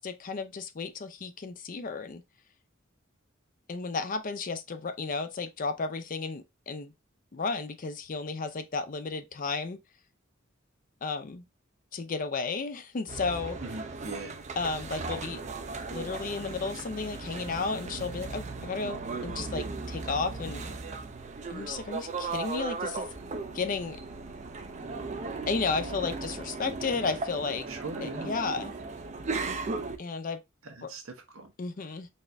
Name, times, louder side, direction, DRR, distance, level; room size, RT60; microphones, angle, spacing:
voice 1, 0.0-2.2 3.7-6.9 7.3-9.8 11.0-11.4 11.9-13.6 14.6-15.4 15.9-20.7 21.5-23.1 23.5-24.0 25.5-27.7 28.0-28.7 30.0-30.4 30.8-30.9 31.6-32.1, left 4 dB, 40° left, 0.5 m, -33 dB
sound 1, 13.1-30.0, right 3 dB, 35° right, 0.5 m, -37 dB
voice 2, 13.6-14.4 27.7-28.3 30.6-31.5, right 2 dB, 85° right, 1.1 m, -40 dB
4.1 x 2.5 x 3.3 m
head